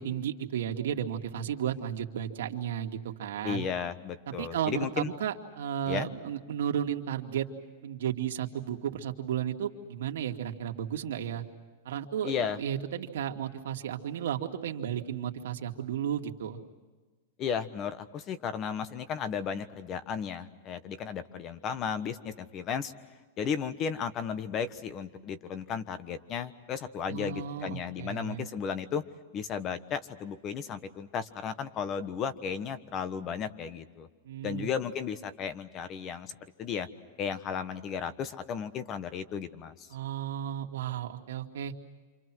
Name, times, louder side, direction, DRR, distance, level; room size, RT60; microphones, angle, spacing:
voice 1, 0.0-3.6 4.4-7.5 7.8-11.4 11.8-16.6 27.1-28.5 34.2-34.7 39.9-41.7, right 9 dB, 80° right, 3 dB, 2.4 m, -33 dB
voice 2, 3.4-5.1 5.9-6.1 12.2-12.6 17.4-22.9 23.4-29.0 29.3-34.1 34.4-36.3 36.6-36.9 37.2-39.9, left 7 dB, 25° left, 12 dB, 1.3 m, -34 dB
29.0 x 27.0 x 6.3 m, 1.3 s
supercardioid pair, 160°, 0 cm